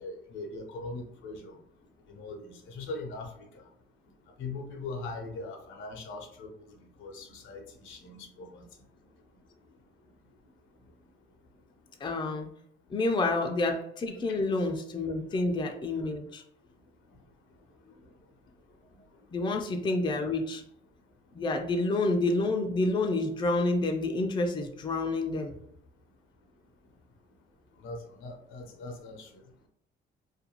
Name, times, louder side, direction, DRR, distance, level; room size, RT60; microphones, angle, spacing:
voice 1, 0.0-1.6 2.1-3.3 4.4-6.5 7.0-8.6 27.8-29.3, left 3 dB, 80° left, 4 dB, 0.6 m, -40 dB
voice 2, 12.0-12.5 12.9-16.4 19.3-20.6 21.4-25.5, left 2 dB, 25° left, 3 dB, 0.4 m, -28 dB
2.5 x 2.2 x 2.9 m, 0.69 s
cardioid pair, 90°, 20 cm